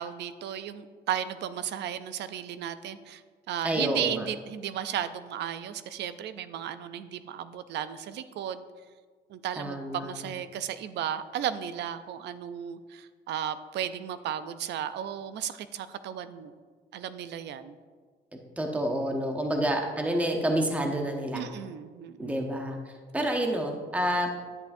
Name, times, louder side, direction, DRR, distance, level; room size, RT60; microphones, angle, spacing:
voice 1, 0.0-3.2 3.5-8.6 9.3-16.5 16.9-17.8 21.3-22.4, right 10 dB, 80° right, 12 dB, 0.5 m, -34 dB
voice 2, 3.6-4.3 9.6-10.3 18.6-21.5 22.2-24.3, right 1 dB, 10° right, 2 dB, 0.9 m, -29 dB
10.5 x 8.3 x 2.6 m, 1.6 s
cardioid pair, 115°, 18 cm